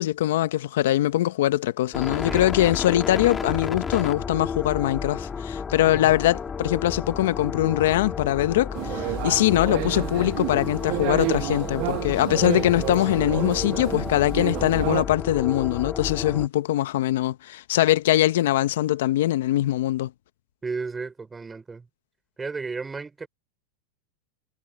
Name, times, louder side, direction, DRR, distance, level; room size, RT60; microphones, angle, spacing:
voice 1, 0.0-20.1, left 14 dB, 75° left, 1.1 m, -22 dB
sound 1, 1.9-16.5, left 6 dB, 20° left, 3.5 m, -32 dB
sound 2, 8.7-15.0, right 28 dB, 55° right, 0.3 m, -30 dB
voice 2, 20.6-21.8 22.4-23.3, right 4 dB, 15° right, 4.2 m, -33 dB
hypercardioid pair, 110°, 0 cm